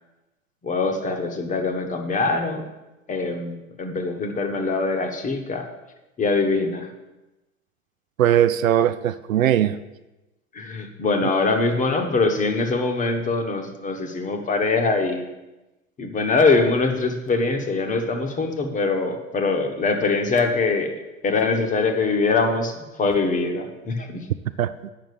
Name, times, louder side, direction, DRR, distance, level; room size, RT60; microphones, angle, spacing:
voice 1, 0.6-2.6 3.1-5.7 6.2-6.9 10.5-15.3 16.0-20.9 21.2-24.3, left 3 dB, 20° left, 5 dB, 1.1 m, -23 dB
voice 2, 8.2-9.8 11.2-11.3 17.9-18.0 24.6-24.9, right 11 dB, 70° right, 12 dB, 0.6 m, -20 dB
8.6 x 6.0 x 6.7 m, 1.0 s
figure-of-eight pair, 90°, 42 cm